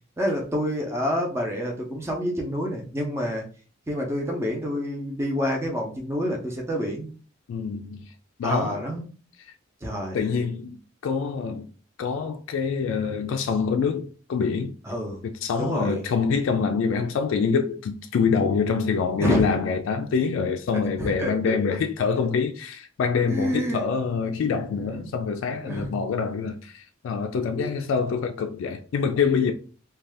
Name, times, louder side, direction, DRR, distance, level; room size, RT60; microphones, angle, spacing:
voice 1, 0.2-3.4 3.9-7.1 8.4-9.0 9.8-10.2 14.8-15.2 15.6-16.0 19.2-19.5 21.0-21.6 23.3-23.9 24.7-25.1 25.6-26.0 27.6-27.7, equal, 15° right, 0.5 m, -28 dB
voice 2, 7.5-8.1 8.4-8.9 10.1-10.8 11.0-11.7 12.0-14.8 15.2-29.5, left 5 dB, 70° left, 0.3 m, -25 dB
2.6 x 2.2 x 3.3 m
head